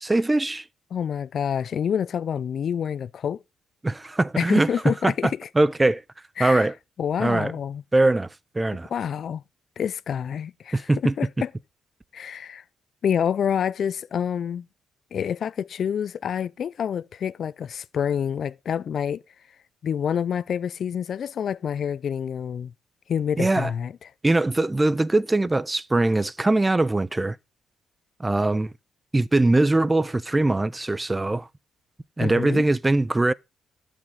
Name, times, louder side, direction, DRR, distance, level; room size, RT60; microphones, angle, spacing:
voice 1, 0.0-0.6 3.8-6.0 6.4-6.7 7.2-7.5 7.9-8.3 8.5-8.9 10.7-11.1 23.4-23.7 24.2-27.4 28.2-28.7 29.1-31.5 32.2-33.3, right 2 dB, 15° right, 0.5 m, -22 dB
voice 2, 0.9-3.4 4.4-5.5 6.4-6.7 7.0-7.8 8.9-9.4 9.8-10.9 11.2-11.5 12.1-12.6 13.0-14.6 15.1-19.2 19.8-22.7 23.1-23.9 32.2-32.6, left 8 dB, 60° left, 0.4 m, -27 dB
12.0 x 6.4 x 3.7 m
cardioid pair, 90°, 0 cm